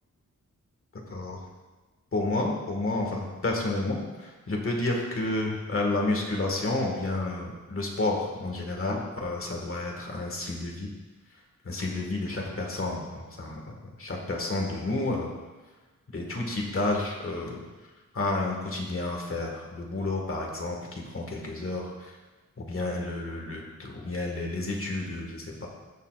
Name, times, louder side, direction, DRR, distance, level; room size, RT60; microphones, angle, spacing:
voice 1, 2.1-10.9 11.6-13.7 14.0-15.3 16.1-17.6 18.1-22.1 22.6-25.7, left 2 dB, 45° left, 0 dB, 1.6 m, -30 dB
14.0 x 6.8 x 2.4 m, 1.2 s
wide cardioid pair, 155°, 31 cm